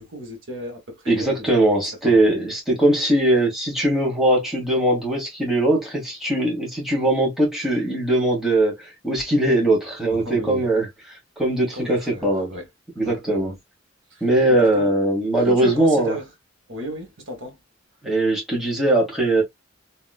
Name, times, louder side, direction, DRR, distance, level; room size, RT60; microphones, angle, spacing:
voice 1, 0.0-2.5 9.6-9.7 10.1-10.7 11.7-12.7 13.0-13.5 14.1-14.9 15.3-16.3 16.7-17.6, right 1 dB, 70° right, 1.6 m, -34 dB
voice 2, 1.1-10.9 11.4-12.5 13.0-13.5 14.2-16.1 18.0-19.4, right 1 dB, ahead, 1.5 m, -20 dB
3.0 x 2.9 x 2.4 m
head